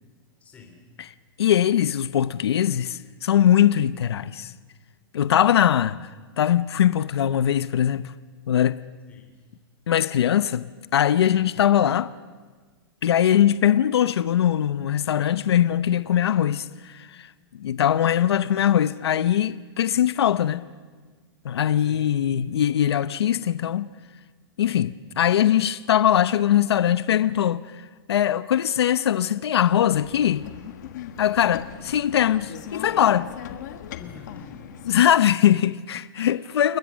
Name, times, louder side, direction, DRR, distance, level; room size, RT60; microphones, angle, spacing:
voice 1, 0.4-0.9 9.1-9.4 21.8-22.3 34.0-34.8 36.2-36.4, left 5 dB, 10° left, 3.3 m, -46 dB
voice 2, 1.4-4.5 5.1-6.0 6.4-8.1 8.5-8.8 9.9-12.1 13.0-17.3 17.6-20.7 21.4-23.9 24.6-30.5 31.2-33.3 34.9-36.8, left 10 dB, 85° left, 0.8 m, -21 dB
sound 1, 29.9-35.1, left 10 dB, 45° left, 1.4 m, -39 dB
29.0 x 21.0 x 6.3 m
supercardioid pair, 175°, 13 cm